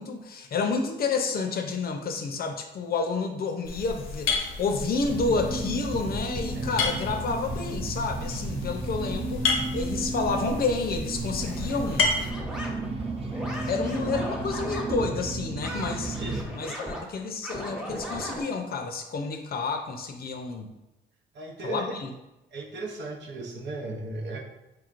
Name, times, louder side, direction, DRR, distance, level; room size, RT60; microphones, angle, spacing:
voice 1, 0.0-12.2 13.7-16.2 16.5-20.7 21.6-22.1, left 4 dB, 50° left, 4 dB, 0.6 m, -30 dB
sound 1, 3.6-12.3, left 4 dB, 85° left, 0.7 m, -32 dB
sound 2, 5.0-16.4, right 3 dB, 30° right, 0.5 m, -33 dB
sound 3, 11.4-15.1 15.6-18.4, equal, 5° right, 1.0 m, -38 dB
voice 2, 16.2-16.9 21.3-21.8 22.5-24.4, right 2 dB, 65° right, 0 dB, 0.8 m, -36 dB
4.7 x 3.0 x 2.5 m, 0.94 s
cardioid pair, 90°, 20 cm